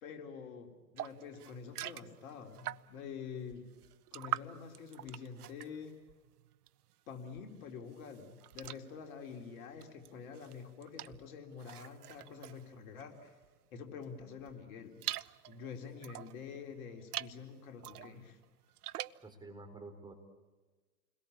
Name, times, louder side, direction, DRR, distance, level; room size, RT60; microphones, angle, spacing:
voice 1, 0.0-3.6 4.1-6.0 7.1-13.3 13.7-15.0 15.5-18.4, left 6 dB, 60° left, 4 dB, 4.2 m, -47 dB
sound 1, 1.0-3.1 3.5-6.9 7.2-13.5 14.0-16.4 16.9-17.4 17.8-19.3, right 14 dB, 70° right, 0.8 m, -45 dB
voice 2, 19.2-20.1, right 2 dB, 10° right, 4 dB, 4.3 m, -49 dB
29.5 x 22.0 x 8.7 m, 1.3 s
hypercardioid pair, 110°, 47 cm